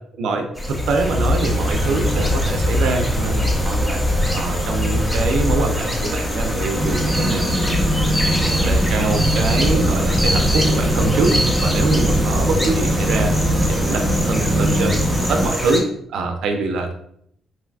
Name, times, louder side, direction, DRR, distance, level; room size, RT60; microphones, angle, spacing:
voice 1, 0.2-4.0 4.3-8.1 8.4-11.3 11.6-15.0 15.3-16.9, right 3 dB, 75° right, 4 dB, 0.4 m, -24 dB
sound 1, 0.6-15.8, equal, 10° left, 0.6 m, -22 dB
sound 2, 6.8-15.5, right 1 dB, 35° right, 0.7 m, -21 dB
3.2 x 2.6 x 2.5 m, 0.68 s
cardioid pair, 90°, 0 cm